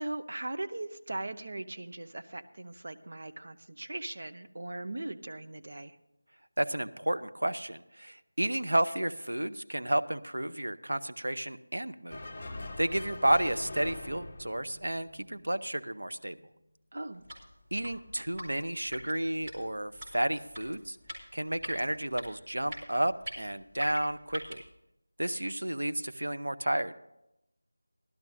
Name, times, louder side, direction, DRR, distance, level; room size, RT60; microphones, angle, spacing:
voice 1, 0.0-6.0 16.9-17.2, right 2 dB, 55° right, 7 dB, 0.9 m, -39 dB
voice 2, 6.6-12.2 12.8-16.4 17.7-21.0 21.3-24.6 25.2-26.9, right 1 dB, 90° right, 10 dB, 0.7 m, -31 dB
sound 1, 12.1-15.6, left 2 dB, 25° left, 1.1 m, -43 dB
sound 2, 17.1-24.7, equal, 15° right, 2.8 m, -45 dB
17.5 x 12.0 x 2.7 m, 0.87 s
figure-of-eight pair, 170°, 0 cm